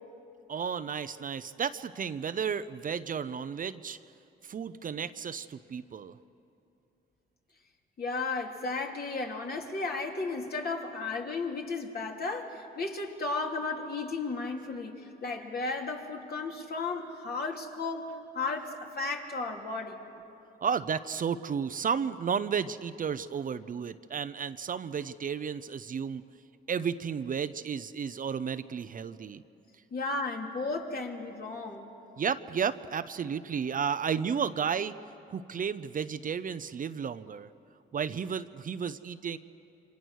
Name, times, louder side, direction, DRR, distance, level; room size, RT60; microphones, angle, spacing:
voice 1, 0.5-4.0 4.4-6.1 20.6-26.2 26.7-29.4 32.2-34.9 35.3-37.5 37.9-39.4, right 7 dB, 45° right, 12 dB, 0.8 m, -33 dB
voice 2, 8.0-20.0 29.9-31.9, left 3 dB, 50° left, 1 dB, 3.1 m, -34 dB
28.5 x 25.5 x 6.5 m, 2.8 s
cardioid pair, 90°, 20 cm